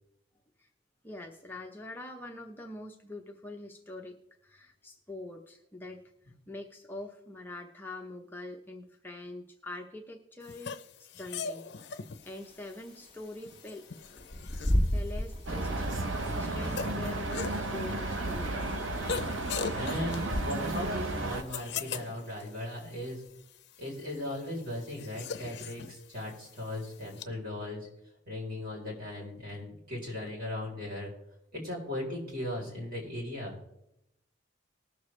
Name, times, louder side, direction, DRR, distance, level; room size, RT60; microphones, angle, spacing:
voice 1, 1.0-6.1 6.5-13.8 14.9-18.8, left 2 dB, 10° left, 1 dB, 0.7 m, -44 dB
sound 1, 10.4-27.2, left 6 dB, 60° left, 0.6 m, -42 dB
Bird / Wind, 12.2-20.9, equal, 25° right, 1.7 m, -35 dB
sound 2, 15.5-21.4, right 2 dB, 80° right, 0.9 m, -33 dB
voice 2, 19.7-23.3 23.8-27.9 28.3-31.1 31.5-33.6, left 1 dB, 50° right, -3 dB, 3.8 m, -37 dB
20.0 x 6.7 x 3.2 m, 0.82 s
head